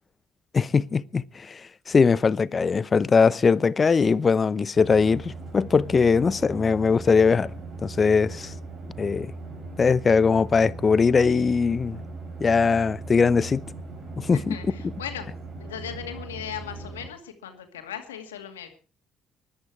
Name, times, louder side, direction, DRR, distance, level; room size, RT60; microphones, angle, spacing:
voice 1, 0.5-1.6 1.9-7.5 7.8-8.5 9.0-9.3 9.8-12.0 12.4-13.6 14.2-14.6, left 5 dB, 40° left, 0.8 m, -21 dB
sound 1, 4.7-17.1, right 3 dB, 55° right, 6.6 m, -39 dB
voice 2, 14.3-15.3 15.6-18.7, left 9 dB, 90° left, 2.3 m, -37 dB
21.0 x 11.5 x 4.8 m
hypercardioid pair, 50°, 0 cm